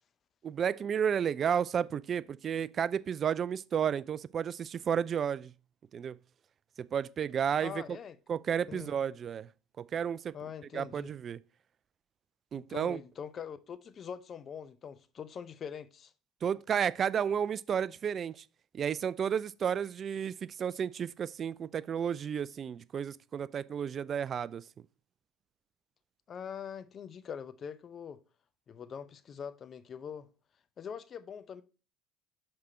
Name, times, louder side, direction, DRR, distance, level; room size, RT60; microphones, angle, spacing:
voice 1, 0.4-5.5 5.9-6.2 6.8-7.8 8.3-9.5 9.8-10.3 10.7-11.4 12.5-13.0 16.4-18.4 18.7-24.6, right 8 dB, 45° right, 0.3 m, -32 dB
voice 2, 7.6-8.2 8.7-8.9 10.3-11.1 12.5-16.1 26.3-28.2 28.7-30.3 30.8-31.6, left 7 dB, 45° left, 0.6 m, -43 dB
5.9 x 4.9 x 4.2 m
hypercardioid pair, 70°, 0 cm